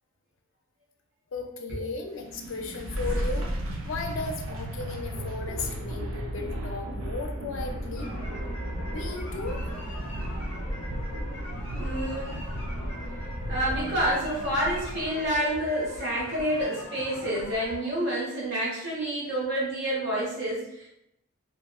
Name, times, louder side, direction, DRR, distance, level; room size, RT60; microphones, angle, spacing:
voice 1, 1.3-8.1 8.9-9.6 12.3-12.4, left 4 dB, 65° left, 4 dB, 0.4 m, -36 dB
sound 1, 2.1-15.2, equal, 75° right, 0.5 m, -34 dB
sound 2, 8.0-17.8, left 1 dB, 25° left, 0.7 m, -41 dB
voice 2, 11.7-12.4 13.5-20.9, right 1 dB, 50° right, -6 dB, 1.1 m, -28 dB
2.9 x 2.5 x 2.3 m, 0.82 s
head